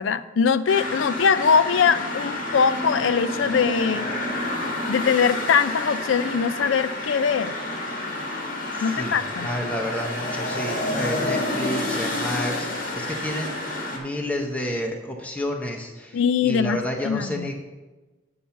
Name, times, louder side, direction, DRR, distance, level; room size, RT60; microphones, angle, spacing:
voice 1, 0.0-4.1 4.9-7.5 8.8-9.5 16.1-17.5, left 6 dB, 85° left, 14 dB, 0.4 m, -22 dB
sound 1, 0.7-14.0, left 1 dB, 50° left, 1.9 m, -29 dB
voice 2, 8.7-13.6 13.9-17.5, left 1 dB, 10° left, 0 dB, 0.8 m, -30 dB
8.6 x 5.4 x 5.8 m, 1.2 s
head